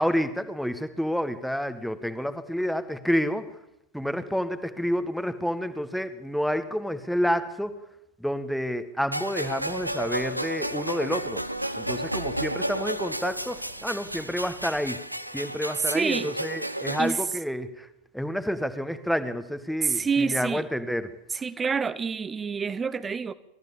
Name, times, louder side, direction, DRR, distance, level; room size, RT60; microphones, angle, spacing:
voice 1, 0.0-3.5 3.9-7.8 8.2-11.4 11.8-15.0 15.3-17.9 18.1-21.1, equal, ahead, 1.7 m, -29 dB
sound 1, 9.1-17.1, right 1 dB, 90° right, 1.0 m, -32 dB
sound 2, 9.4-15.6, right 4 dB, 70° right, 8.0 m, -51 dB
voice 2, 15.8-16.3 17.0-17.2 19.8-20.6 21.3-23.3, right 5 dB, 15° right, 0.9 m, -27 dB
27.5 x 14.5 x 7.2 m
figure-of-eight pair, 90°, 0 cm